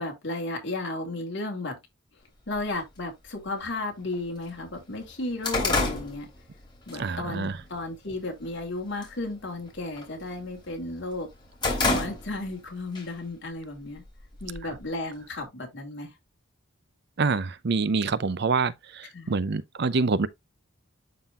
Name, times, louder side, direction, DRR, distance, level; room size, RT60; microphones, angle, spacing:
voice 1, 0.0-1.8 2.5-6.3 6.9-11.3 11.8-14.0 14.4-16.1 19.1-19.3, left 2 dB, 60° left, 2.6 m, -34 dB
sound 1, 2.6-2.7 3.6-3.7 4.1-4.2 4.6-7.0 7.4-7.7 8.1-8.6 8.9-9.2 9.5-10.7 11.1-12.6 13.0-13.1 14.0-14.9, left 2 dB, 25° left, 2.9 m, -29 dB
voice 2, 7.0-7.5 17.2-20.3, right 4 dB, 55° right, 0.5 m, -26 dB
11.5 x 3.8 x 2.4 m
head